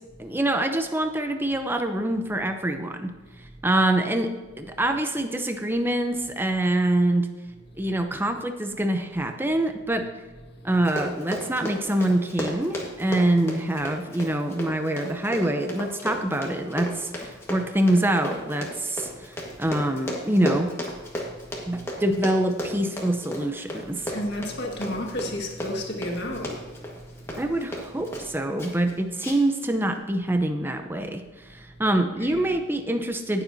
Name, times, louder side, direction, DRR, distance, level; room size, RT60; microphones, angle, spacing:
voice 1, 0.2-3.1 3.6-7.3 7.8-10.2 10.6-19.3 19.6-20.7 21.7-24.2 27.4-31.2 31.5-33.4, right 1 dB, 10° right, 0.7 m, -25 dB
Run, 10.7-28.3 28.6-28.9 29.2-29.6 29.9-30.0, equal, 10° left, 1.5 m, -34 dB
voice 2, 24.1-26.9 32.2-32.4, left 1 dB, 55° left, 1.8 m, -31 dB
18.5 x 7.3 x 2.7 m
head